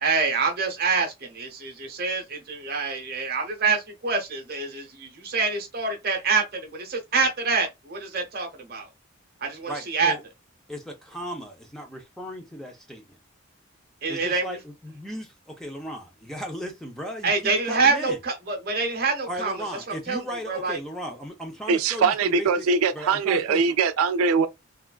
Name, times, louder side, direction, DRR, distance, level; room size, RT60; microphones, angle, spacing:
voice 1, 0.0-8.9 9.4-10.1 14.0-14.6 17.2-19.6 20.1-20.2 20.5-20.8, right 4 dB, 45° right, 0.9 m, -26 dB
voice 2, 9.7-10.2 10.7-13.2 14.1-18.2 19.3-22.7 22.9-23.6, equal, ahead, 0.5 m, -36 dB
voice 3, 21.7-24.5, right 5 dB, 90° right, 0.4 m, -22 dB
3.4 x 2.4 x 2.3 m
head